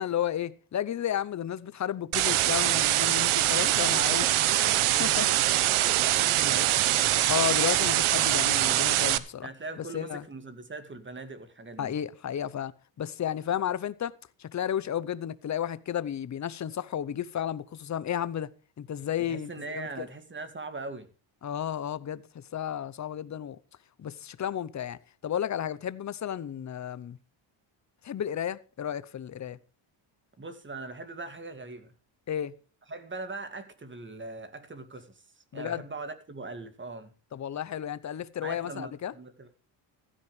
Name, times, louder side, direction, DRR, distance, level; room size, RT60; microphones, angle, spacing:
voice 1, 0.0-4.3 5.0-5.3 7.3-9.5 9.8-10.2 11.8-12.7 13.0-18.5 18.8-20.1 21.4-23.6 24.0-25.0 25.2-27.2 28.0-29.6 32.3-32.5 35.5-35.8 37.3-39.1, left 10 dB, 35° left, 0.8 m, -32 dB
sound 1, 2.1-9.2, right 14 dB, 75° right, 1.1 m, -24 dB
voice 2, 4.1-7.3 9.4-11.9 19.2-21.1 30.4-31.9 32.9-37.1 38.4-39.5, right 3 dB, 25° right, 2.3 m, -41 dB
15.5 x 13.0 x 3.3 m
cardioid pair, 120°, 49 cm